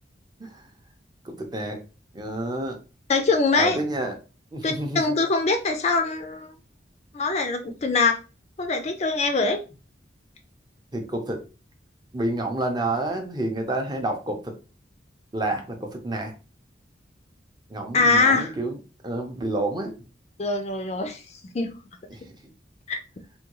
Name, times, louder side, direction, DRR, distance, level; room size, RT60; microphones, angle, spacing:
voice 1, 1.2-1.8 2.1-2.8 3.6-4.2 4.5-5.2 10.9-11.4 12.1-14.6 15.3-16.3 17.7-18.8 19.0-19.9 22.1-22.3, right 2 dB, 25° right, 4 dB, 0.6 m, -29 dB
voice 2, 3.1-3.8 4.6-6.5 7.1-8.2 8.6-9.6 17.9-18.5 20.4-21.7 22.9-23.0, left 3 dB, 35° left, 6 dB, 0.4 m, -23 dB
3.5 x 2.2 x 3.0 m, 0.32 s
head